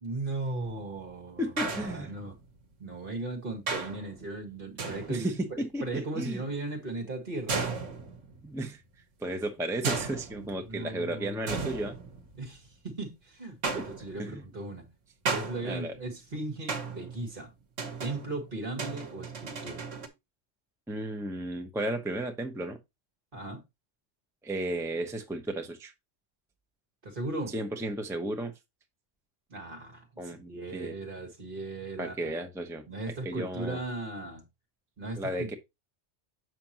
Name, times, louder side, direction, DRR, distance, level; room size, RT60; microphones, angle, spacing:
voice 1, 0.0-2.4 2.8-7.6 10.4-11.6 12.4-14.9 15.3-17.5 18.0-19.8 23.3-23.6 27.0-27.6 29.5-32.3 32.9-34.4 35.0-35.6, right 2 dB, 45° right, 1.9 m, -37 dB
sound 1, 0.6-1.0 1.6-2.6 3.7-4.2 4.8-5.5 7.5-8.5 9.8-10.8 11.5-12.7 13.6-14.4 15.3-16.1 16.7-17.2 17.8-20.1, right 4 dB, 75° right, 1.5 m, -35 dB
voice 2, 1.4-2.1 5.1-6.4 8.4-8.8 9.2-12.0 13.7-13.8 14.2-14.4 15.6-15.9 20.9-22.8 24.4-25.9 27.5-28.5 30.2-30.9 32.0-32.8 33.2-33.8 35.2-35.5, right 1 dB, 5° right, 0.8 m, -34 dB
7.6 x 6.0 x 2.9 m
omnidirectional pair, 1.3 m